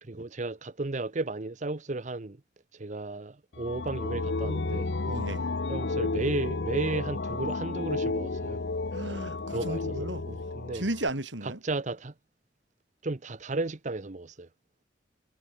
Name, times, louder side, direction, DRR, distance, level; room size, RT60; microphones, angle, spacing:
voice 1, 0.0-2.4 2.7-4.9 5.7-8.6 9.5-10.1 10.5-10.8 11.4-12.1 13.0-14.5, right 2 dB, 40° right, 0.8 m, -34 dB
sound 1, 3.5-11.1, left 3 dB, 70° left, 0.9 m, -32 dB
voice 2, 5.0-5.5 8.9-11.6, right 1 dB, 85° right, 4.9 m, -35 dB
head